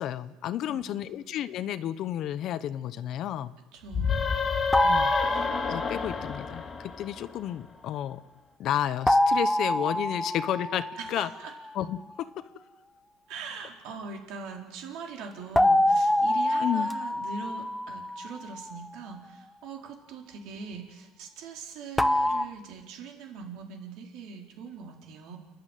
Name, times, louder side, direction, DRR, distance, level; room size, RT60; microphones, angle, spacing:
voice 1, 0.0-3.5 4.8-5.4 5.7-8.2 8.6-11.3 11.7-12.3 16.6-16.9, left 11 dB, 50° left, 14 dB, 0.9 m, -32 dB
voice 2, 0.7-1.1 3.7-4.3 11.0-11.5 13.3-25.4, right 5 dB, 65° right, 1 dB, 4.5 m, -42 dB
sound 1, 3.9-7.5, left 6 dB, 30° left, 2.2 m, -30 dB
sound 2, 4.7-6.2 9.1-11.5 15.6-18.7 22.0-22.4, left 1 dB, 5° left, 0.8 m, -25 dB
29.0 x 11.5 x 9.2 m, 1.2 s
cardioid pair, 130°, 0 cm